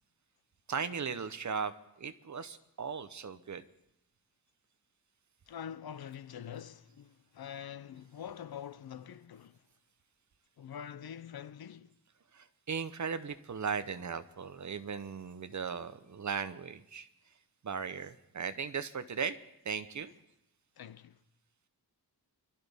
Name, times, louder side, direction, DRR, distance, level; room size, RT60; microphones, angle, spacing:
voice 1, 0.7-3.6 12.3-17.1 17.6-19.4 19.6-20.1, right 6 dB, 50° right, 0.8 m, -37 dB
voice 2, 5.5-9.6 10.6-11.9 20.8-21.2, left 9 dB, 70° left, 0.6 m, -45 dB
27.5 x 12.0 x 3.5 m
wide cardioid pair, 135°, 39 cm